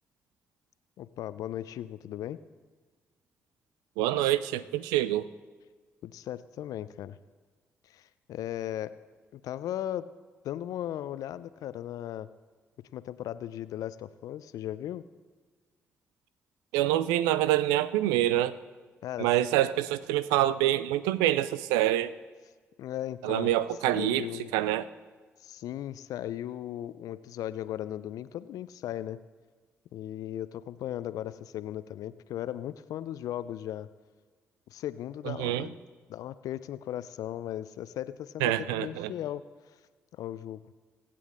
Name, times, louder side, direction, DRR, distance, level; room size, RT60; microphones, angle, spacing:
voice 1, 1.0-2.4 6.0-7.2 7.8-8.9 9.3-10.1 10.4-12.3 12.9-15.1 19.0-19.3 22.8-23.5 23.9-24.5 25.4-29.2 29.9-33.9 34.7-35.8 36.1-39.4 40.1-40.6, left 12 dB, 70° left, 15 dB, 0.5 m, -37 dB
voice 2, 4.0-5.2 16.7-18.5 19.2-22.1 23.2-24.2 24.5-24.8 35.3-35.7 38.4-39.1, right 13 dB, 80° right, 16 dB, 0.4 m, -26 dB
24.0 x 8.4 x 3.7 m, 1.4 s
hypercardioid pair, 40°, 6 cm